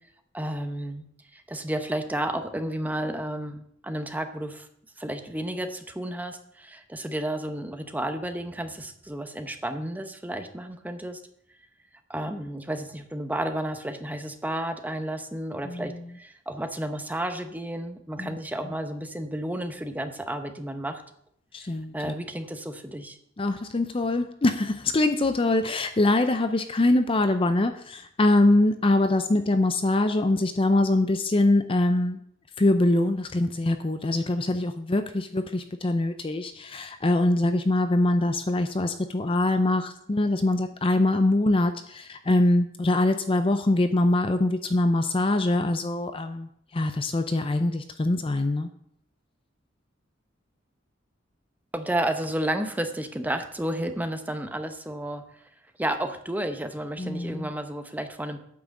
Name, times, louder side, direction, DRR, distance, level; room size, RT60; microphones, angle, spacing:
voice 1, 0.3-1.0 1.3-4.7 5.0-11.2 12.1-21.0 21.9-23.2 51.7-55.4 55.8-58.4, right 1 dB, 10° right, 7 dB, 0.8 m, -32 dB
voice 2, 15.6-16.1 18.2-18.3 21.5-22.1 23.4-32.2 32.6-48.7 57.0-57.5, left 2 dB, 25° left, 9 dB, 0.5 m, -23 dB
8.7 x 6.1 x 7.2 m, 0.69 s
head